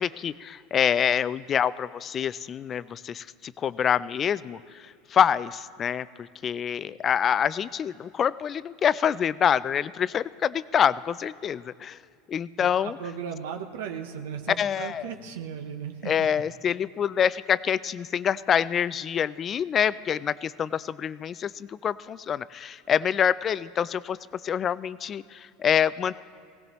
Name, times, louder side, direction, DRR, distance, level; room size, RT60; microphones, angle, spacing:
voice 1, 0.0-12.0 12.3-13.0 14.6-15.1 16.1-24.2 24.4-26.2, left 8 dB, 30° left, 18 dB, 0.3 m, -26 dB
voice 2, 12.6-16.3, right 7 dB, 90° right, 4 dB, 0.9 m, -36 dB
19.5 x 16.5 x 3.0 m, 2.3 s
supercardioid pair, 125°, 0 cm